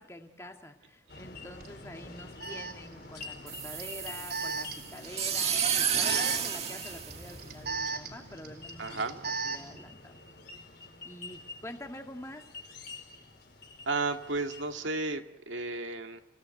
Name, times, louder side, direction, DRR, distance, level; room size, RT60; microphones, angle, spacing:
voice 1, 0.0-5.6 5.9-9.0 9.4-10.2 11.0-12.4, left 1 dB, 15° left, 4 dB, 1.9 m, -46 dB
sound 1, 1.1-14.8, left 3 dB, 50° left, 4.6 m, -48 dB
Alarm, 1.6-1.7 2.4-9.8, right 4 dB, 50° right, 4.0 m, -38 dB
sound 2, 3.5-7.8, right 8 dB, 30° right, 1.8 m, -31 dB
voice 2, 8.8-9.2 13.9-16.2, right 3 dB, 70° right, 5 dB, 2.0 m, -33 dB
30.0 x 17.5 x 8.0 m, 0.75 s
head